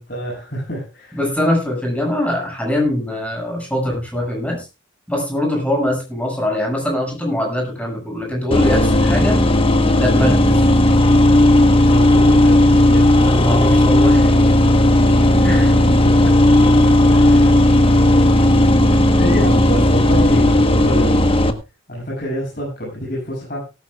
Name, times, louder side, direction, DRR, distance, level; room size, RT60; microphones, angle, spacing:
voice 1, 0.0-1.2 11.9-13.1 15.9-16.3 17.1-17.5 18.9-21.3 21.9-23.6, equal, 45° left, -5 dB, 7.6 m, -27 dB
voice 2, 1.1-4.7 5.1-9.4 10.0-10.6 13.3-14.3 15.4-15.7, left 1 dB, 5° left, 1 dB, 6.8 m, -22 dB
sound 1, 8.5-21.5, left 1 dB, 30° left, 1.3 m, -13 dB
18.0 x 14.0 x 2.4 m, 0.29 s
head